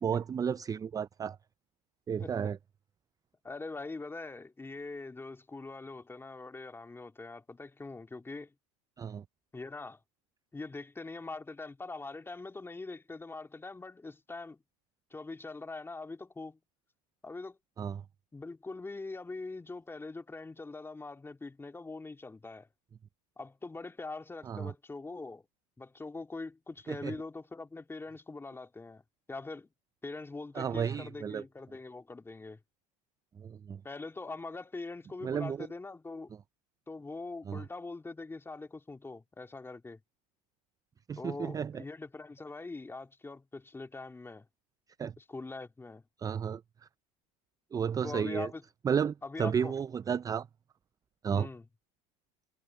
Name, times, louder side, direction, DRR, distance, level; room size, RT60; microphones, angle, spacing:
voice 1, 0.0-1.4 2.1-2.6 9.0-9.2 17.8-18.0 24.4-24.7 26.9-27.2 30.6-31.4 33.4-33.8 35.2-35.7 37.5-37.6 41.1-41.8 45.0-45.1 46.2-46.6 47.7-48.5 48.8-50.5 51.2-51.5, right 7 dB, 20° right, 0.4 m, -32 dB
voice 2, 2.2-2.5 3.4-8.5 9.5-10.0 10.5-14.6 15.1-16.6 17.2-17.6 18.3-22.7 23.4-25.4 25.8-29.0 29.3-29.7 30.0-32.6 33.8-36.3 36.9-40.0 41.2-44.5 45.2-46.0 48.0-48.6 49.2-49.7 51.3-51.7, left 3 dB, 10° left, 2.6 m, -43 dB
supercardioid pair, 105°, 19 cm